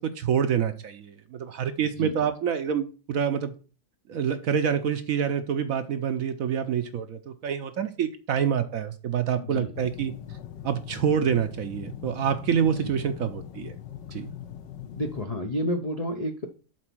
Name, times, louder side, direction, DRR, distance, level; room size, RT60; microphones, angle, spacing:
voice 1, 0.2-3.5 4.1-10.1 10.6-13.7 14.1-14.3, right 8 dB, 65° right, 0.9 m, -27 dB
voice 2, 9.4-9.7 14.8-16.5, equal, 55° left, 0.4 m, -30 dB
sound 1, 9.7-15.2, left 10 dB, 80° left, 1.4 m, -41 dB
7.5 x 4.1 x 6.1 m
omnidirectional pair, 1.9 m